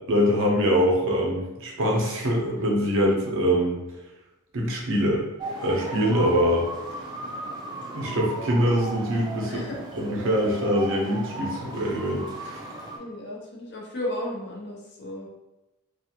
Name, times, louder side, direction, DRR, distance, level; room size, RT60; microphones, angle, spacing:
voice 1, 0.1-3.8 4.5-5.2 5.6-6.7 7.9-9.6 10.0-12.7, equal, 60° right, -1 dB, 0.6 m, -24 dB
sound 1, 5.4-13.0, right 2 dB, 20° right, 0.3 m, -35 dB
voice 2, 9.4-9.8 13.0-15.3, left 1 dB, 50° left, -2 dB, 0.6 m, -34 dB
2.4 x 2.3 x 2.8 m, 0.97 s
head